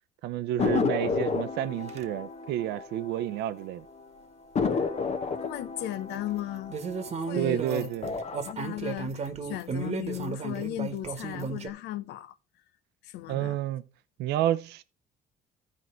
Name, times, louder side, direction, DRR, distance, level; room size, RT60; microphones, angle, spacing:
voice 1, 0.2-3.8 7.3-8.1 13.3-13.8 14.2-14.8, right 12 dB, 85° right, 0.6 m, -30 dB
sound 1, 0.6-3.6 3.9-4.0 4.5-7.5 7.9-8.5, left 5 dB, 40° left, 1.1 m, -31 dB
sound 2, 1.9-2.1 6.7-11.7, right 5 dB, 40° right, 1.3 m, -34 dB
voice 2, 5.4-6.8 7.2-7.9 8.4-12.4 13.0-13.6, left 14 dB, 85° left, 0.7 m, -36 dB
14.0 x 4.8 x 4.4 m
cardioid pair, 110°, 17 cm